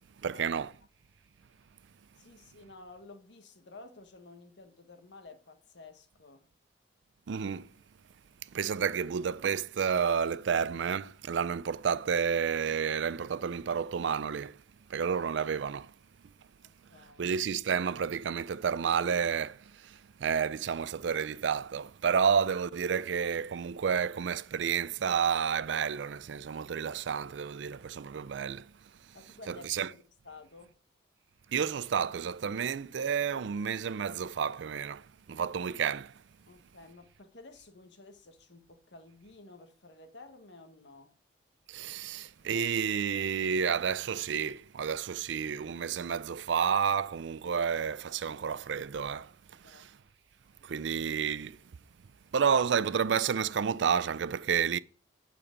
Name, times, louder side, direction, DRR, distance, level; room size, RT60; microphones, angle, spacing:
voice 1, 0.2-0.7 7.3-7.7 8.4-14.6 14.9-15.9 17.0-28.7 29.5-29.9 31.5-36.2 41.7-50.0 50.6-51.6 52.3-54.8, right 7 dB, 75° right, 0.4 m, -30 dB
voice 2, 2.1-6.5 16.6-17.3 29.1-29.7 30.2-30.8 36.5-41.2 49.6-49.9, left 3 dB, 75° left, 1.4 m, -52 dB
8.6 x 7.0 x 5.1 m
head